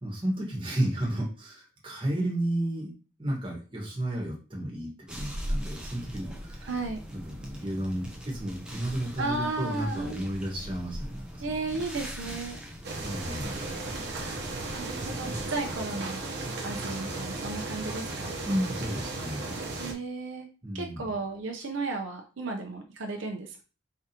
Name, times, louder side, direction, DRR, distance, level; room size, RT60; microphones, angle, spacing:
voice 1, 0.0-2.9 3.2-6.6 7.1-11.8 13.0-13.6 18.4-19.6 20.6-21.0, right 1 dB, 25° right, -2 dB, 1.5 m, -32 dB
sound 1, 5.1-15.8, equal, 5° right, 0.7 m, -40 dB
voice 2, 6.6-7.0 9.2-10.2 11.4-12.6 14.1-14.5 14.7-16.3 16.6-18.3 19.8-20.5 20.7-23.6, right 3 dB, 75° right, 3 dB, 0.7 m, -34 dB
sound 2, 12.8-19.9, right 2 dB, 55° right, 0.9 m, -35 dB
4.6 x 3.6 x 2.9 m, 0.35 s
head